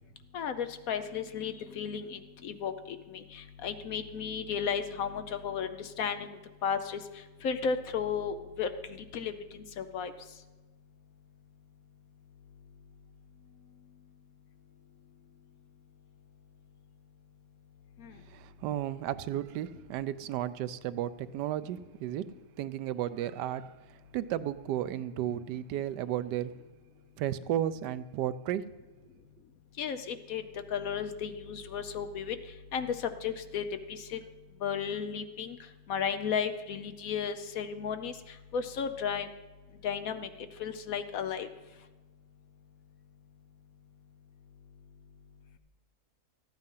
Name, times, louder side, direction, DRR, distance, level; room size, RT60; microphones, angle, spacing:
voice 1, 0.3-6.3 6.6-7.0 7.4-8.7 9.1-10.1 18.0-18.1 29.8-30.4 30.7-32.4 32.7-33.6 33.9-34.2 34.6-35.6 35.9-38.1 38.5-39.3 39.8-40.3 40.6-41.5, left 7 dB, 65° left, 9 dB, 1.0 m, -34 dB
voice 2, 18.3-22.3 22.6-23.8 24.1-26.5 27.2-28.7, right 11 dB, 90° right, 14 dB, 1.2 m, -33 dB
14.0 x 9.0 x 5.6 m, 1.3 s
omnidirectional pair, 1.8 m